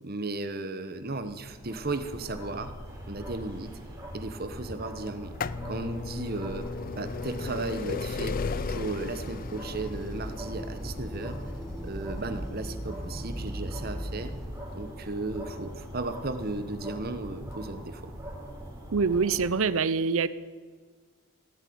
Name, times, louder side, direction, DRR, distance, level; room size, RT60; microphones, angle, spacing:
voice 1, 0.0-2.8 3.1-3.7 4.1-5.3 5.6-6.7 6.9-8.4 8.7-11.4 11.8-14.3 14.7-18.1, right 2 dB, 45° right, 10 dB, 1.1 m, -35 dB
sound 1, 1.0-19.5, equal, 15° right, 4.0 m, -42 dB
sound 2, 5.1-16.7 17.5-17.6 18.6-18.7 18.9-19.0, left 4 dB, 40° left, 0.4 m, -37 dB
sound 3, 6.8-14.5, equal, ahead, 1.2 m, -40 dB
voice 2, 18.9-20.3, right 5 dB, 70° right, 16 dB, 0.6 m, -25 dB
17.0 x 8.2 x 9.5 m, 1.5 s
head